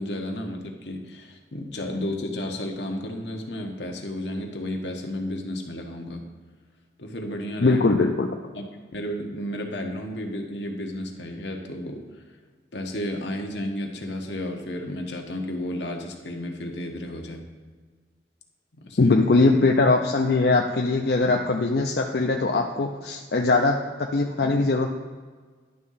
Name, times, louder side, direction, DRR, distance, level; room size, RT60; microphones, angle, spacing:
voice 1, 0.0-6.3 7.0-7.9 8.5-8.6 8.9-12.0 12.7-17.4 18.8-19.1, left 1 dB, 85° left, 2 dB, 1.2 m, -32 dB
voice 2, 7.6-8.3 19.0-24.9, left 3 dB, 65° left, 2 dB, 0.5 m, -21 dB
11.0 x 3.7 x 5.6 m, 1.5 s
head